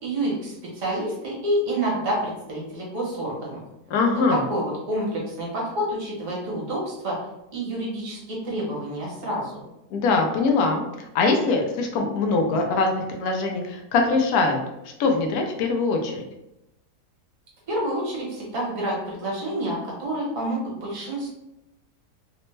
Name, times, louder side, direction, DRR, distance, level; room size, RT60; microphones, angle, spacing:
voice 1, 0.0-3.6 4.3-7.2 7.5-9.7 17.7-21.3, right 1 dB, 55° right, -4 dB, 1.4 m, -28 dB
voice 2, 3.9-4.4 9.9-10.8 11.1-14.6 15.0-16.2, left 3 dB, 75° left, 3 dB, 1.0 m, -22 dB
3.3 x 2.1 x 3.1 m, 0.89 s
omnidirectional pair, 1.7 m